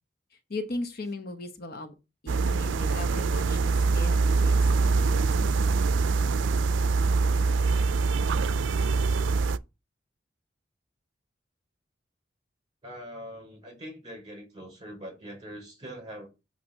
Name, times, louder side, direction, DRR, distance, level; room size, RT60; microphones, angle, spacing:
voice 1, 0.3-1.9 2.2-5.5, left 2 dB, 55° left, 7 dB, 0.9 m, -38 dB
sound 1, 2.3-9.6, right 4 dB, 80° right, 0.4 m, -24 dB
voice 2, 12.8-16.3, equal, 25° right, 1 dB, 5.1 m, -42 dB
8.7 x 3.0 x 6.4 m, 0.28 s
head